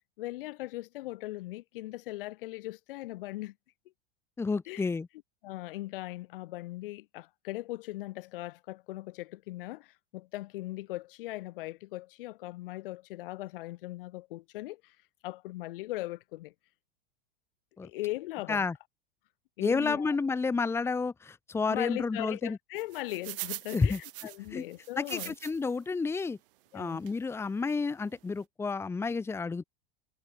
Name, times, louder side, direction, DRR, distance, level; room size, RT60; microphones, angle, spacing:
voice 1, 0.2-3.5 4.7-4.8 5.4-14.9 15.2-16.5 17.8-18.7 19.6-20.2 21.7-25.3 26.7-27.0, left 18 dB, 65° left, 6.6 m, -39 dB
voice 2, 4.4-5.1 17.8-17.9 18.5-18.7 19.6-22.6 23.7-24.0 24.5-24.6 25.0-26.4 26.7-29.6, left 4 dB, 10° left, 1.9 m, -30 dB
sound 1, 22.8-25.8 26.2-26.3 27.1-27.2 27.7-27.8 28.0-28.2, right 18 dB, 65° right, 3.7 m, -42 dB
supercardioid pair, 165°, 29 cm